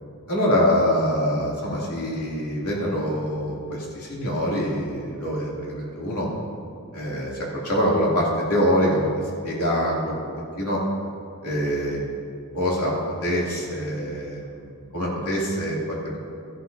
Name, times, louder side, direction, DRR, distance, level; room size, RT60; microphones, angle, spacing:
voice 1, 0.3-6.3 6.9-10.8 11.4-12.0 12.5-12.9 13.2-16.2, equal, 85° left, -5 dB, 2.9 m, -25 dB
14.0 x 11.5 x 2.8 m, 2.4 s
head